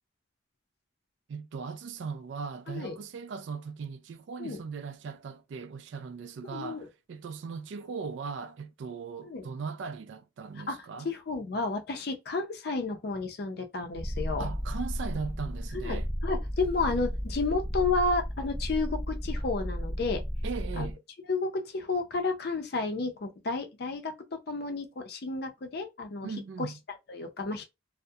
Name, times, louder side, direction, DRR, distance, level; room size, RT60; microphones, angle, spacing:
voice 1, 1.3-11.1 14.4-16.1 20.4-21.0 26.2-26.8, right 5 dB, 70° right, 0.3 m, -38 dB
voice 2, 6.4-6.9 9.2-9.5 10.6-10.8 11.0-14.5 15.7-20.2 20.8-20.9 21.3-26.3 26.6-27.6, left 3 dB, 55° left, 0.5 m, -32 dB
Purr, 13.9-20.9, equal, 10° right, 0.5 m, -33 dB
2.3 x 2.0 x 2.6 m
head